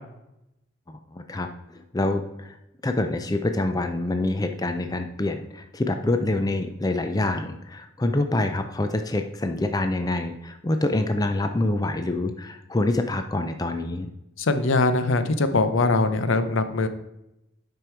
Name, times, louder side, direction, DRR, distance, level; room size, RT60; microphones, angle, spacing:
voice 1, 0.9-2.6 2.8-14.1, left 2 dB, 20° left, 7 dB, 0.4 m, -26 dB
voice 2, 14.4-16.9, left 3 dB, 70° left, 10 dB, 0.6 m, -22 dB
7.7 x 5.3 x 4.5 m, 0.88 s
head